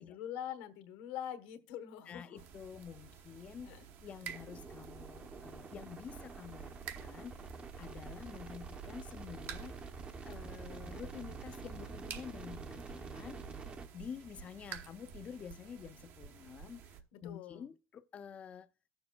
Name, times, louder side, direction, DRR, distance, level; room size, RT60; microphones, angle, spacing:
voice 1, 0.0-2.4 3.6-3.8 17.1-17.7, left 10 dB, 80° left, 1.1 m, -44 dB
voice 2, 2.1-3.7 4.0-9.7 10.2-13.4 13.9-16.8 17.2-18.7, left 7 dB, 30° left, 0.4 m, -49 dB
sound 1, 2.4-17.0, right 7 dB, 55° right, 1.0 m, -51 dB
sound 2, 4.3-13.9, right 4 dB, 25° right, 0.7 m, -47 dB
17.5 x 7.0 x 2.2 m
cardioid pair, 135°, 4 cm